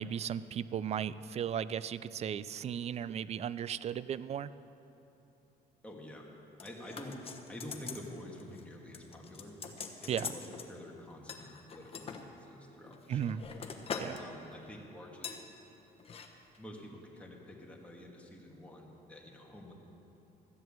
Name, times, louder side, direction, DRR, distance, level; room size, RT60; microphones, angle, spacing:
voice 1, 0.0-4.5 10.1-10.3 13.1-13.4 14.0-14.2, right 9 dB, 40° right, 17 dB, 0.4 m, -36 dB
voice 2, 5.8-6.3 6.6-7.2 7.5-9.6 10.0-13.4 14.2-15.4 16.6-19.7, left 1 dB, 5° left, -2 dB, 2.0 m, -48 dB
sound 1, 6.6-8.1 8.4-8.6 8.9-10.7 11.3-12.2 12.8-14.2 14.5-14.7 15.2-15.4 16.0-16.3 16.5-16.6, left 6 dB, 35° left, 1.1 m, -43 dB
13.5 x 7.7 x 7.5 m, 3.0 s
cardioid pair, 110°, 17 cm